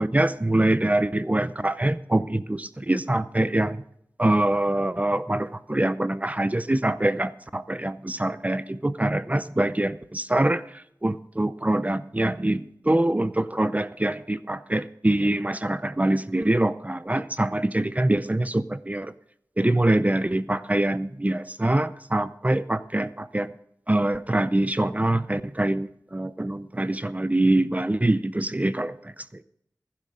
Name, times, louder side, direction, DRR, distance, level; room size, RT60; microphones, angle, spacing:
voice 1, 0.0-3.8 4.2-19.1 19.6-23.5 23.9-29.4, right 1 dB, 20° right, 14 dB, 0.5 m, -24 dB
14.5 x 12.0 x 3.7 m, 0.74 s
wide cardioid pair, 65°, 7 cm